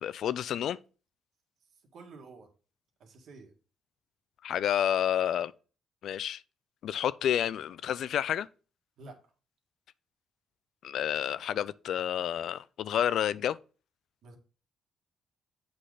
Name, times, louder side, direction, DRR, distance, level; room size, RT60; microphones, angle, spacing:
voice 1, 0.0-0.8 4.4-5.5 6.0-6.4 6.8-8.5 10.8-13.6, left 10 dB, 70° left, 0.3 m, -30 dB
voice 2, 1.9-2.5 3.0-3.5 9.0-9.3 14.2-14.4, right 3 dB, 70° right, 1.7 m, -50 dB
7.7 x 4.2 x 4.9 m
cardioid pair, 90°, 0 cm